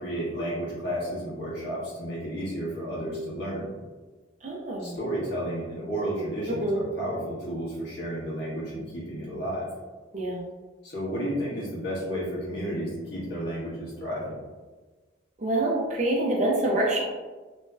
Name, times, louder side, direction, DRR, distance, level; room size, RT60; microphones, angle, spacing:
voice 1, 0.0-3.7 4.8-9.7 10.8-14.4, equal, 60° left, -9 dB, 1.4 m, -32 dB
voice 2, 4.4-5.0 6.5-6.8 10.1-10.4 15.4-17.0, right 1 dB, 35° right, -2 dB, 0.4 m, -26 dB
3.0 x 2.6 x 2.2 m, 1.3 s
head